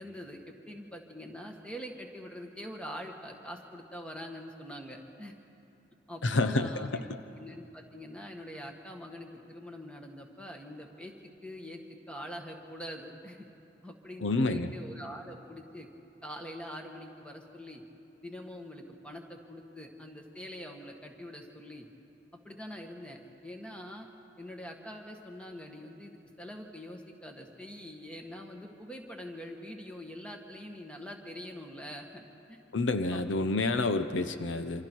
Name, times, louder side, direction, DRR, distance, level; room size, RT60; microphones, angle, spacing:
voice 1, 0.0-5.3 6.1-7.0 7.4-11.1 11.4-11.8 12.1-13.5 13.8-15.9 16.2-17.8 18.2-21.8 22.4-24.1 24.4-32.2 32.5-32.6 33.1-33.5, equal, 5° left, 2 dB, 1.7 m, -44 dB
voice 2, 6.2-7.2 14.2-14.7 32.7-34.9, left 2 dB, 75° left, 9 dB, 0.8 m, -29 dB
27.5 x 25.5 x 4.6 m, 2.9 s
head